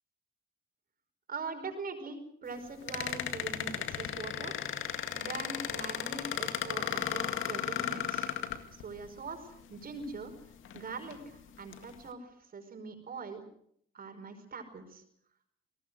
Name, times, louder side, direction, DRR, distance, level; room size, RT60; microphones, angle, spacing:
voice 1, 1.3-4.6 5.1-8.3 8.7-10.3 10.7-13.4 13.9-15.0, right 4 dB, 50° right, 6 dB, 5.4 m, -42 dB
sound 1, 2.9-9.1 10.0-10.1 10.7-11.2 11.7-11.9, left 10 dB, 80° left, 2.0 m, -35 dB
27.5 x 19.0 x 6.5 m, 0.66 s
cardioid pair, 90°, 20 cm